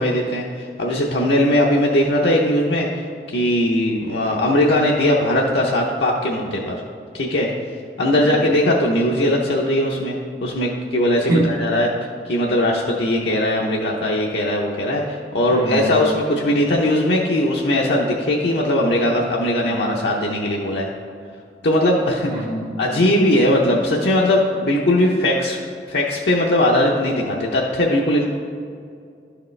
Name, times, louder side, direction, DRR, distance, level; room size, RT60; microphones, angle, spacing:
voice 1, 0.0-6.7 7.1-7.5 8.0-11.9 12.2-20.9 21.6-22.3 22.8-25.6 25.9-28.2, left 1 dB, 75° left, -2 dB, 0.7 m, -19 dB
voice 2, 11.3-11.6 15.5-16.0 22.3-22.8, right 1 dB, 75° right, -5 dB, 1.4 m, -24 dB
11.0 x 4.9 x 3.2 m, 2.3 s
head